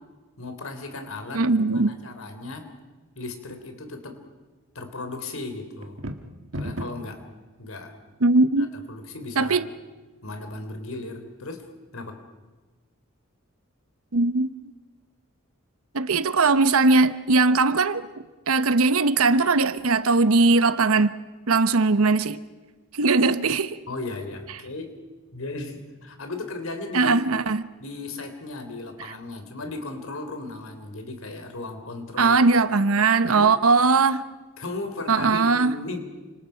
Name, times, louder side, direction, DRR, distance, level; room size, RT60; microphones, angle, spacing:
voice 1, 0.4-2.7 3.1-4.2 4.7-6.0 6.6-7.2 7.6-7.9 8.9-9.7 10.2-11.7 11.9-12.2 23.9-24.9 25.3-27.3 27.8-32.4 33.3-33.5 34.6-36.0, left 2 dB, 70° left, 3.6 m, -36 dB
voice 2, 1.3-1.9 8.2-8.7 9.4-9.7 14.1-14.5 15.9-18.1 18.5-21.2 21.5-22.4 22.9-23.8 26.9-27.6 29.0-29.1 32.2-34.2 35.1-35.8, right 3 dB, 80° right, 0.9 m, -20 dB
sound 1, 5.8-7.2, equal, 65° right, 1.7 m, -33 dB
29.5 x 26.0 x 5.8 m
head